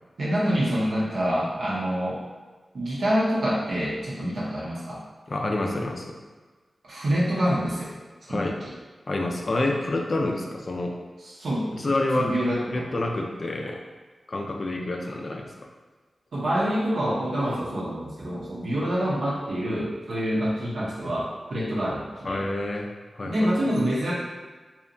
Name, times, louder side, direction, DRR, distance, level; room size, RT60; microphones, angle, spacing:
voice 1, 0.2-2.2 2.7-5.0 6.8-7.9 8.3-8.5 11.4-11.9 12.1-13.0 16.3-22.4 23.2-24.1, equal, 75° right, -6 dB, 0.6 m, -26 dB
voice 2, 5.3-6.2 8.3-8.6 9.1-11.0 11.7-12.4 12.7-13.8 14.3-15.7 22.2-23.5, left 2 dB, 45° left, 1 dB, 0.3 m, -28 dB
2.7 x 2.1 x 2.5 m, 1.4 s
wide cardioid pair, 90°, 0 cm